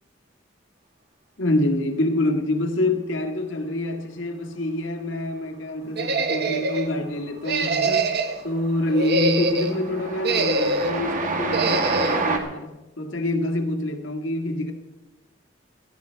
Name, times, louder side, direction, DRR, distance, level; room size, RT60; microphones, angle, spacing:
voice 1, 1.4-8.1 8.4-14.7, left 1 dB, 75° left, 1.8 m, -26 dB
sound 1, 6.0-6.9 7.4-8.4 8.9-9.7 10.2-11.0 11.5-12.2, right 3 dB, 60° right, 1.3 m, -24 dB
Train, 6.7-7.2 7.5-12.4, right 3 dB, 40° right, 2.0 m, -29 dB
17.5 x 13.5 x 4.6 m
head